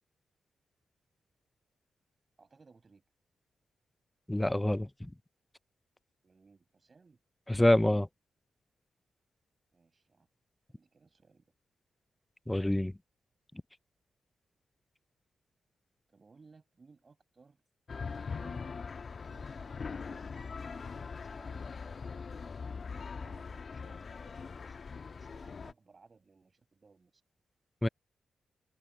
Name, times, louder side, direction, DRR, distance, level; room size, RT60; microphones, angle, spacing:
voice 1, 2.4-3.0 6.2-7.2 9.7-10.3 10.7-11.5 16.1-17.6 18.3-18.9 19.2-22.5 23.1-27.2, right 4 dB, 45° right, 7.2 m, -62 dB
voice 2, 4.3-5.1 7.5-8.1 12.5-12.9 27.8-27.9, left 1 dB, 10° left, 0.4 m, -26 dB
sound 1, 17.9-25.7, left 5 dB, 55° left, 1.3 m, -41 dB
supercardioid pair, 50°, 0 cm